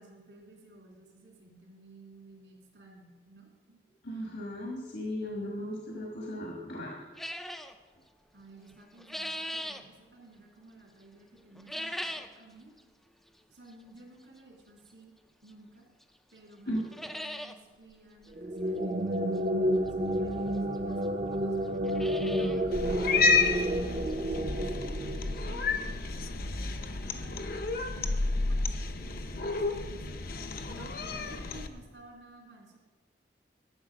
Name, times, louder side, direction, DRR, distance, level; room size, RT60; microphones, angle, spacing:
voice 1, 0.0-3.8 4.1-4.2 8.3-12.7 13.5-15.1 15.4-15.8 16.3-21.0 21.4-21.7 22.4-24.7 25.4-27.5 27.9-30.2 30.7-32.8, right 2 dB, 75° right, -1 dB, 2.7 m, -54 dB
voice 2, 4.0-7.0 16.7-16.8, left 1 dB, 70° left, -2 dB, 1.5 m, -36 dB
sound 1, 7.2-7.7 8.7-9.8 11.5-12.4 12.8-12.9 13.7-13.8 15.5-15.6 16.0-16.1 16.4-16.5 16.7-17.5 17.9-18.0 18.2-18.3 19.9-20.0 20.7-20.8 21.0-21.1 21.6-22.6 23.0-23.1 23.6-23.7 24.1-24.2 25.9-26.0 26.2-26.3 26.7-26.8, equal, ahead, 0.4 m, -39 dB
sound 2, 18.3-25.8, equal, 40° right, 0.7 m, -30 dB
Cat, 22.7-31.7, left 3 dB, 50° left, 0.6 m, -31 dB
12.5 x 6.7 x 5.0 m, 1.5 s
head